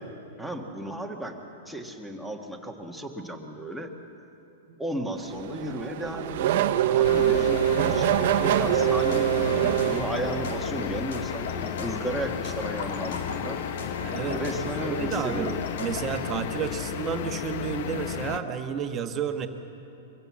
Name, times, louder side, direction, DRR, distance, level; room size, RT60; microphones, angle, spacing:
voice 1, 0.4-1.4 1.6-3.9 4.8-13.6 14.2-15.6, right 1 dB, ahead, 1 dB, 1.6 m, -34 dB
Race car auto racing / Accelerating revving vroom, 5.2-10.8, right 12 dB, 60° right, 0.9 m, -24 dB
sound 1, 7.0-18.4, left 10 dB, 55° left, 0.8 m, -33 dB
sound 2, 8.7-16.3, left 2 dB, 70° left, 3.2 m, -38 dB
voice 2, 14.0-15.5 15.8-19.5, right 7 dB, 25° right, 6 dB, 1.3 m, -31 dB
23.5 x 15.5 x 7.5 m, 2.8 s
hypercardioid pair, 150°, 0 cm